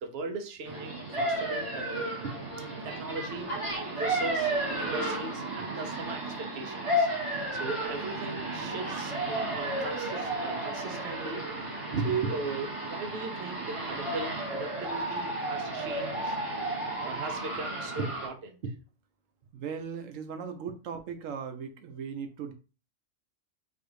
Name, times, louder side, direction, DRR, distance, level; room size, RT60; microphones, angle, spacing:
voice 1, 0.0-2.3 2.8-3.5 4.0-4.5 4.8-11.5 11.9-16.4 17.0-18.7, right 3 dB, 55° right, 5 dB, 0.9 m, -37 dB
sound 1, 0.6-18.3, right 1 dB, 25° right, 1.4 m, -33 dB
voice 2, 19.5-22.5, right 6 dB, 85° right, 7 dB, 1.1 m, -38 dB
4.0 x 2.6 x 4.7 m, 0.34 s
omnidirectional pair, 1.3 m